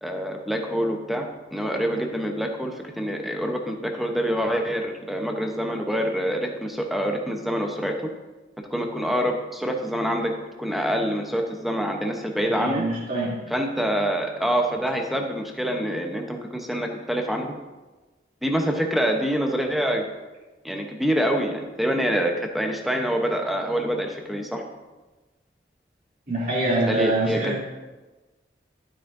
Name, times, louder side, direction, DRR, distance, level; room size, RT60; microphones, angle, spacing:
voice 1, 0.0-8.0 8.7-12.8 13.5-17.6 18.4-20.0 20.6-24.6 26.9-27.6, equal, ahead, 2 dB, 0.8 m, -26 dB
voice 2, 12.4-13.5 26.3-27.6, right 2 dB, 45° right, -5 dB, 2.8 m, -25 dB
12.0 x 8.9 x 2.6 m, 1.2 s
head